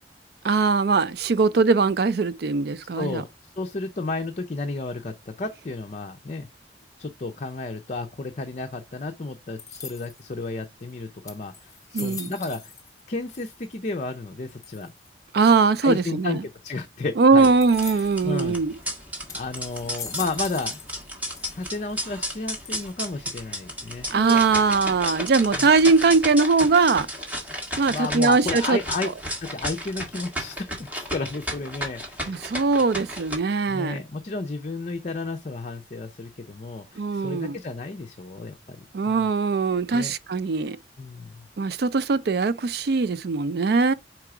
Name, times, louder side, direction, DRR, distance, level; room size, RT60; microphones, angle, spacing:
voice 1, 0.4-3.2 11.9-12.3 15.3-16.4 17.2-18.7 24.1-27.1 27.8-28.8 32.3-34.0 37.0-37.6 38.9-40.8 41.6-43.9, right 4 dB, 60° right, 0.4 m, -21 dB
voice 2, 2.9-3.3 3.6-6.5 7.0-12.7 13.1-14.9 15.8-17.5 17.9-18.6 19.3-20.8 21.5-24.1 25.5-25.7 27.8-29.1 29.4-32.5 33.7-39.3 39.9-40.1 41.0-41.4, left 3 dB, 40° left, 0.6 m, -32 dB
sound 1, 9.6-10.3 10.9-11.0 11.3-13.0 13.3-13.9 14.6-15.1 17.6-18.3 18.8-18.9 19.3-21.0 21.3-21.9 22.6-23.2, left 5 dB, 20° left, 1.0 m, -41 dB
sound 2, 17.3-33.3, equal, 10° right, 1.7 m, -33 dB
4.8 x 4.5 x 4.9 m
head